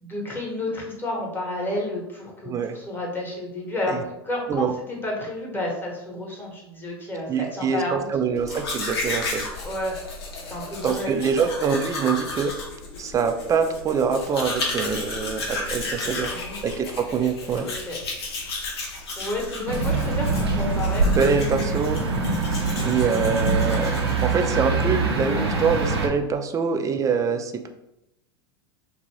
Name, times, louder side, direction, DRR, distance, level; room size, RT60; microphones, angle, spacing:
voice 1, 0.0-8.1 9.6-9.9 10.5-11.2 16.0-16.6 17.6-18.0 19.2-21.0, left 1 dB, 15° left, -2 dB, 0.9 m, -31 dB
voice 2, 2.5-2.8 3.9-4.0 4.5-4.7 7.3-9.5 10.8-12.5 13.0-16.3 16.6-17.7 21.1-22.0 22.8-27.7, right 6 dB, 25° right, 7 dB, 0.4 m, -24 dB
Domestic sounds home sounds, 8.4-24.4, left 2 dB, 75° left, 0.8 m, -33 dB
sound 1, 19.7-26.1, right 3 dB, 85° right, 0.6 m, -24 dB
2.6 x 2.5 x 3.2 m, 0.85 s
hypercardioid pair, 85°, 13 cm